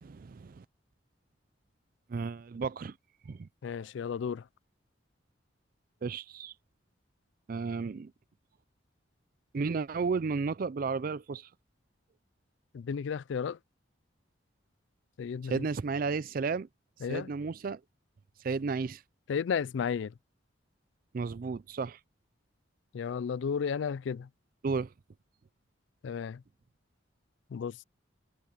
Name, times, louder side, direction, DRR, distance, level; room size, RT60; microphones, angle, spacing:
voice 1, 0.0-0.6 2.1-2.9 3.3-3.5 6.0-6.5 7.5-8.1 9.5-11.5 15.4-16.7 17.1-17.8 18.4-19.0 21.1-22.0 24.6-24.9, right 4 dB, 45° right, 0.4 m, -33 dB
voice 2, 3.6-4.4 12.7-13.6 15.2-15.6 17.0-17.3 19.3-20.1 22.9-24.3 26.0-26.4 27.5-27.8, left 6 dB, 70° left, 0.3 m, -33 dB
head